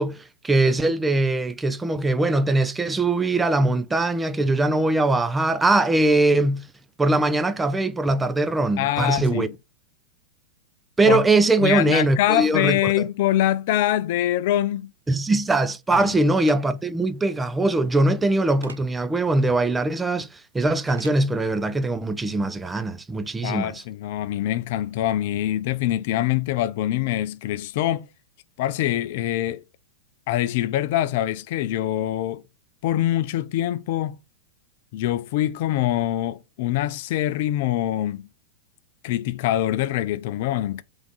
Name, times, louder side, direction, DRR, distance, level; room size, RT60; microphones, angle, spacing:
voice 1, 0.0-6.7 7.0-9.5 11.0-12.8 15.1-20.3 20.5-23.8, right 2 dB, 10° right, 0.4 m, -21 dB
voice 2, 8.8-9.5 11.0-11.3 11.6-14.9 15.9-16.1 23.4-28.1 28.6-29.6 30.3-32.4 32.8-34.2 34.9-38.3 39.0-40.8, left 13 dB, 50° left, 0.4 m, -24 dB
sound 1, 16.4-16.6 18.6-18.8 20.9-21.2, right 4 dB, 75° right, 0.6 m, -42 dB
3.5 x 3.5 x 4.1 m
figure-of-eight pair, 95°, 0 cm